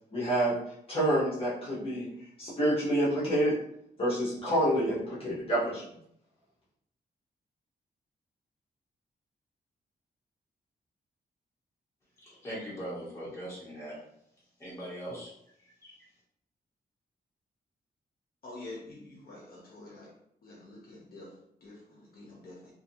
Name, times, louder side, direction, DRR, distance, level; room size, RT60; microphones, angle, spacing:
voice 1, 0.1-0.5 0.9-2.1 2.4-3.5 4.0-5.8, right 1 dB, 35° left, -8 dB, 1.0 m, -27 dB
voice 2, 12.2-14.0 14.6-15.3 15.6-16.1, equal, 15° left, -8 dB, 1.3 m, -41 dB
voice 3, 18.4-20.1 20.4-22.7, left 2 dB, 60° left, -4 dB, 0.7 m, -47 dB
2.7 x 2.6 x 2.7 m, 0.72 s
wide cardioid pair, 160°, 17 cm